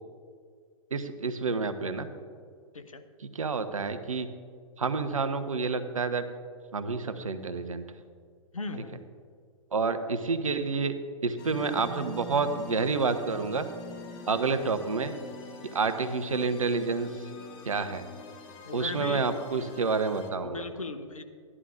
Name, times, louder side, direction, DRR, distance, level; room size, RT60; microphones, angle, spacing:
voice 1, 0.9-2.1 3.3-4.3 4.8-6.2 6.7-7.8 9.7-10.9 11.2-13.6 14.3-15.1 15.6-17.1 17.7-18.0 18.7-20.6, right 4 dB, 80° right, 10 dB, 0.8 m, -29 dB
voice 2, 8.5-9.0 18.6-19.3 20.4-21.2, left 3 dB, 85° left, 8 dB, 0.9 m, -37 dB
sound 1, 11.4-20.3, left 3 dB, 45° left, 1.3 m, -45 dB
14.0 x 11.0 x 2.5 m, 2.1 s
figure-of-eight pair, 110°, 17 cm